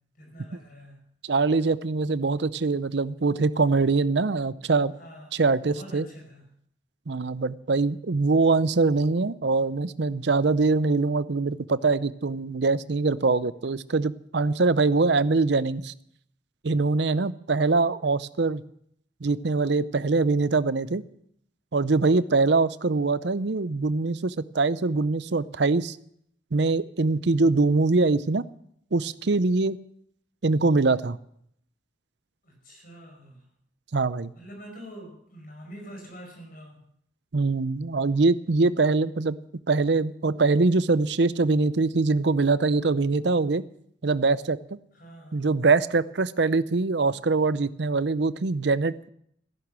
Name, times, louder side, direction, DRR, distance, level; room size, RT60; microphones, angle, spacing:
voice 1, 0.2-1.0 5.0-6.4 32.4-33.4 34.3-36.8 44.9-45.5, equal, 50° left, 1 dB, 5.3 m, -45 dB
voice 2, 1.2-4.9 5.3-6.1 7.1-15.9 16.6-18.6 19.2-21.0 21.7-26.0 26.5-28.4 28.9-29.8 30.4-31.2 33.9-34.3 37.3-39.4 39.7-43.6 44.0-44.6 45.3-49.1, right 3 dB, 65° right, 16 dB, 0.6 m, -23 dB
15.0 x 11.0 x 7.5 m, 0.70 s
head